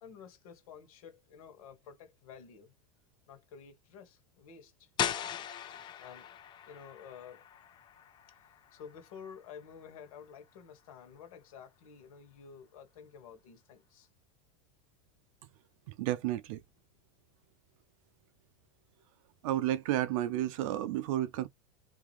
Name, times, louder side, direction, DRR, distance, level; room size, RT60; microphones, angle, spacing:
voice 1, 0.0-2.7 3.3-4.9 6.0-6.3 6.7-7.4 8.7-14.1, left 7 dB, 75° left, 1.7 m, -51 dB
sound 1, 5.0-10.6, left 9 dB, 25° left, 0.5 m, -40 dB
voice 2, 16.0-16.6 19.4-21.5, right 13 dB, 65° right, 0.5 m, -31 dB
3.6 x 2.9 x 3.0 m
supercardioid pair, 145°, 18 cm